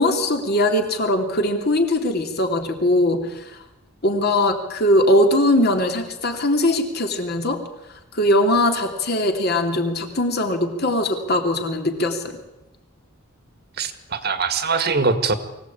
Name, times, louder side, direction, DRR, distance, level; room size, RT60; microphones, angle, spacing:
voice 1, 0.0-3.6 4.0-7.6 8.1-12.4, left 1 dB, 50° left, 4 dB, 3.0 m, -20 dB
voice 2, 13.8-15.3, right 4 dB, 50° right, 10 dB, 1.8 m, -22 dB
24.0 x 17.0 x 8.7 m, 0.97 s
head